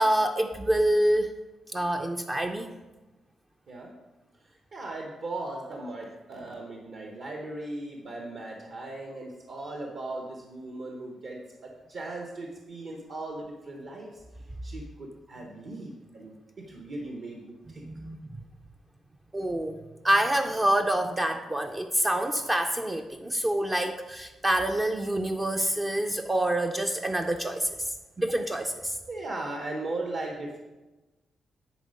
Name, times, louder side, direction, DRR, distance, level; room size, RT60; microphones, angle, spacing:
voice 1, 0.0-1.3 1.7-2.8 17.8-18.3 19.3-19.8 20.0-29.0, right 1 dB, 15° right, 5 dB, 0.4 m, -27 dB
voice 2, 4.5-14.2 14.6-17.8 29.1-30.6, right 2 dB, 55° right, 0 dB, 1.0 m, -38 dB
10.5 x 4.2 x 5.1 m, 1.1 s
wide cardioid pair, 160°, 0 cm